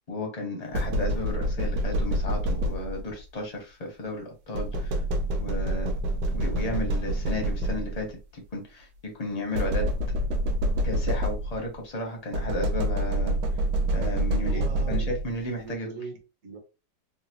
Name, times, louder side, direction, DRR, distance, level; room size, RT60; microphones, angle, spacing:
voice 1, 0.1-5.0 5.3-5.9 6.3-9.9 10.8-13.4 13.9-15.9, left 1 dB, 35° left, 0.6 m, -33 dB
sound 1, 0.7-3.2 4.5-8.1 9.5-11.7 12.3-15.4, right 1 dB, 75° right, 1.3 m, -27 dB
voice 2, 14.4-15.2 15.6-16.6, right 4 dB, 45° right, 1.0 m, -39 dB
3.9 x 2.2 x 2.8 m
omnidirectional pair, 2.1 m